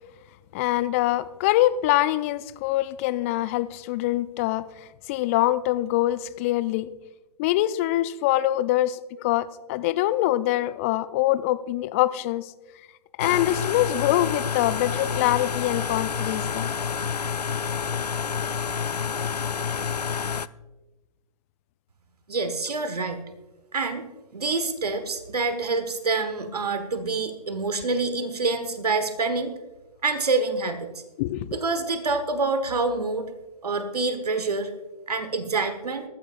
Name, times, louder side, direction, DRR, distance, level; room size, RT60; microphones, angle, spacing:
voice 1, 0.5-6.9 7.4-12.5 13.2-16.7 31.2-31.5, left 15 dB, 20° left, 17 dB, 0.4 m, -24 dB
sound 1, 13.2-20.5, left 6 dB, 85° left, 0.4 m, -28 dB
voice 2, 22.3-23.2 23.7-24.0 24.3-29.5 30.0-30.9 31.5-33.3 33.6-34.7 35.1-36.0, right 3 dB, 75° right, 10 dB, 1.3 m, -26 dB
19.0 x 14.0 x 2.5 m, 1.1 s
figure-of-eight pair, 125°, 20 cm